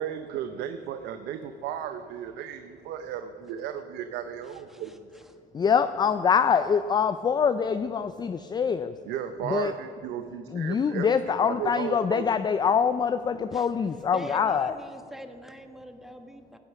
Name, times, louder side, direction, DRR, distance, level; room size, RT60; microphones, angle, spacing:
voice 1, 0.0-5.1 9.1-11.1 11.4-12.4, right 9 dB, 85° right, 9 dB, 0.7 m, -35 dB
voice 2, 4.4-5.3 13.5-16.6, equal, ahead, 6 dB, 1.3 m, -45 dB
voice 3, 5.5-9.0 9.4-9.7 10.5-14.7, left 6 dB, 25° left, 11 dB, 0.4 m, -24 dB
16.0 x 9.7 x 6.0 m, 2.5 s
cardioid pair, 110°, 17 cm